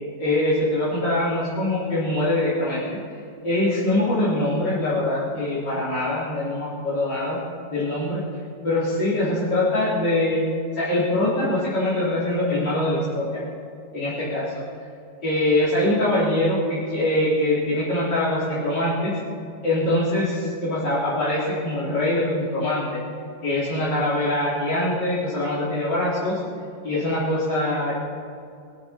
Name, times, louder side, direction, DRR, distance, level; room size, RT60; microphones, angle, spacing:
voice 1, 0.2-2.9 3.4-7.4 7.7-8.2 8.6-10.4 10.7-13.4 13.9-14.6 15.2-19.1 19.6-23.0 23.4-26.4 26.8-27.9, left 1 dB, 70° left, -10 dB, 4.3 m, -23 dB
23.5 x 9.5 x 5.9 m, 2.4 s
omnidirectional pair, 2.0 m